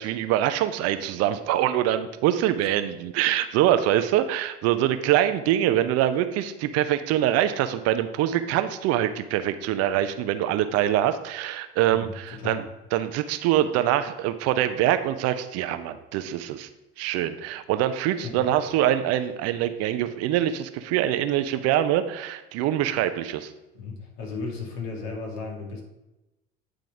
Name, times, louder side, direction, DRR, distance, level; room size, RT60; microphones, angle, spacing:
voice 1, 0.0-12.6 12.9-16.7 17.0-23.5, right 12 dB, 50° right, 10 dB, 0.7 m, -24 dB
voice 2, 11.9-12.6 18.2-18.5 23.7-25.8, left 4 dB, 60° left, 1 dB, 2.3 m, -35 dB
9.5 x 3.8 x 4.8 m, 0.97 s
hypercardioid pair, 80°, 31 cm